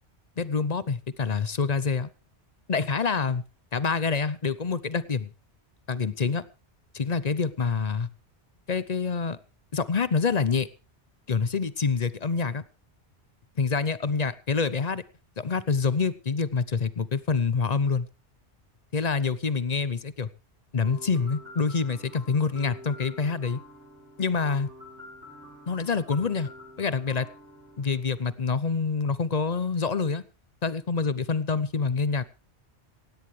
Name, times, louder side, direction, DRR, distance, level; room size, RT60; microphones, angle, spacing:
voice 1, 0.4-2.1 2.7-3.4 3.7-5.3 5.9-6.4 6.9-8.1 8.7-9.4 9.7-10.7 11.3-12.6 13.6-15.0 15.4-18.1 18.9-20.3 20.7-23.6 24.2-24.7 25.7-26.5 26.8-27.3 27.8-30.2 30.6-32.2, left 5 dB, 40° left, 17 dB, 0.8 m, -26 dB
sound 1, 20.8-28.7, left 2 dB, 80° right, 5.4 m, -47 dB
17.5 x 16.5 x 3.3 m, 0.32 s
omnidirectional pair, 1.2 m